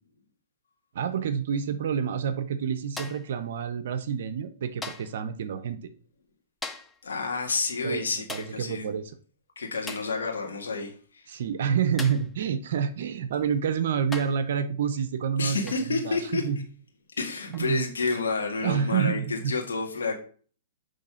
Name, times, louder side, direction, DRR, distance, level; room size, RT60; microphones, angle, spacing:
voice 1, 0.9-5.8 7.8-9.1 11.3-16.6 17.5-17.9 18.6-19.5, right 7 dB, 65° right, 0.6 m, -28 dB
sound 1, 3.0-3.4 4.8-5.2 6.6-7.0 8.3-8.6 9.9-10.2 12.0-12.3 13.4-13.5 14.1-14.5 15.7-15.9 17.5-17.7, left 3 dB, 10° left, 0.6 m, -39 dB
voice 2, 7.0-8.9 9.6-11.3 15.4-16.4 17.2-20.2, left 4 dB, 85° left, 1.6 m, -30 dB
6.5 x 3.2 x 5.6 m
hypercardioid pair, 130°, 0 cm